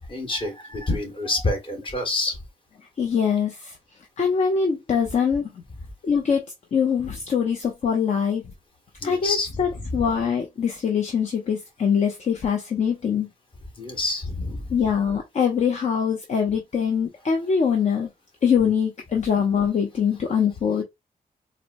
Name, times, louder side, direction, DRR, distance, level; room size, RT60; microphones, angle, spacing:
voice 1, 0.1-2.4 9.0-10.0 13.8-14.8 18.6-18.7, left 2 dB, 40° left, 1.5 m, -28 dB
voice 2, 3.0-3.8 4.2-5.5 6.0-6.5 6.7-8.4 9.0-13.3 14.7-18.1 18.4-20.8, left 7 dB, 55° left, 0.6 m, -23 dB
4.2 x 2.1 x 2.5 m
cardioid pair, 95°, 14 cm